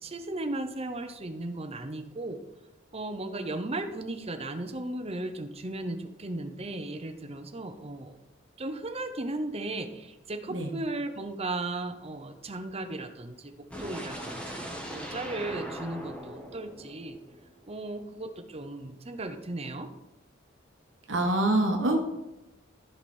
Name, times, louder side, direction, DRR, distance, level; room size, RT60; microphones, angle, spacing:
voice 1, 0.0-2.4 2.9-8.2 8.6-17.2 17.7-19.9, right 2 dB, 30° right, 8 dB, 0.8 m, -36 dB
sound 1, 13.7-17.7, equal, 5° left, 1.5 m, -40 dB
voice 2, 21.1-22.0, right 1 dB, 70° right, 2 dB, 1.5 m, -25 dB
14.5 x 4.8 x 4.4 m, 0.96 s
head